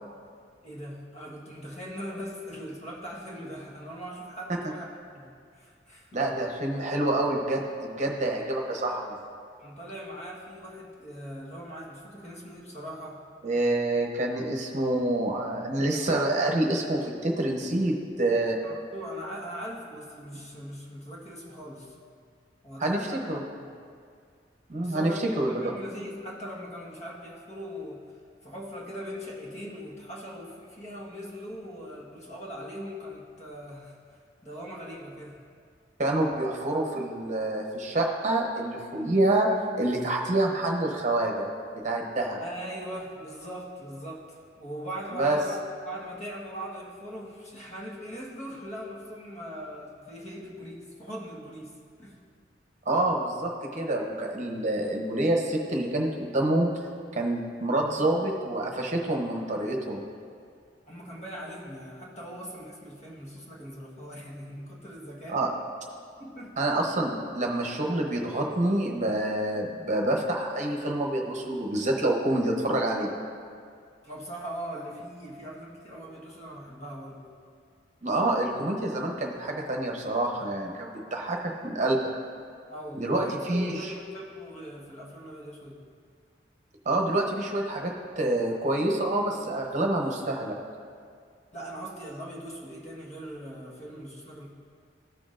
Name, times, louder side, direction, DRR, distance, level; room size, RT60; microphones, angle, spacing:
voice 1, 0.6-4.9 5.1-6.2 9.6-13.2 18.6-22.0 22.6-23.2 24.8-28.0 28.4-35.4 42.4-51.7 52.0-52.2 60.9-65.4 66.2-66.6 74.0-77.2 82.7-85.8 91.5-94.5, equal, 40° left, -3 dB, 1.4 m, -40 dB
voice 2, 6.1-9.2 13.4-18.6 22.8-23.4 24.7-25.1 25.4-25.7 36.0-39.5 39.8-41.5 41.8-42.4 45.1-45.4 52.9-56.7 57.2-60.0 65.3-65.5 66.6-73.1 78.0-82.0 83.0-83.8 86.8-90.6, right 1 dB, 40° right, 0 dB, 0.9 m, -27 dB
14.5 x 6.1 x 2.5 m, 2.2 s
head